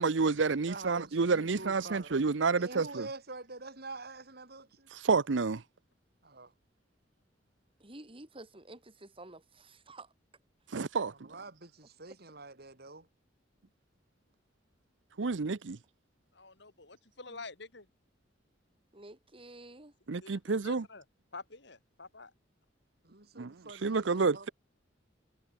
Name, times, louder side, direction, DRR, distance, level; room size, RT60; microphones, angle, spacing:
voice 1, 0.0-3.1 4.9-5.6 10.7-11.1 15.2-15.8 20.1-20.8 23.4-23.5 23.8-24.5, right 4 dB, 80° right, 0.7 m, -29 dB
voice 2, 0.7-2.2 2.5-4.9 6.2-6.5 11.0-13.1 23.0-24.5, right 3 dB, 55° right, 5.2 m, -46 dB
voice 3, 7.8-10.1 12.1-12.2 17.3-17.4 18.9-19.9, right 2 dB, 30° right, 4.4 m, -51 dB
voice 4, 16.3-17.9 20.2-21.0 21.3-22.3, left 3 dB, 65° left, 4.5 m, -48 dB
head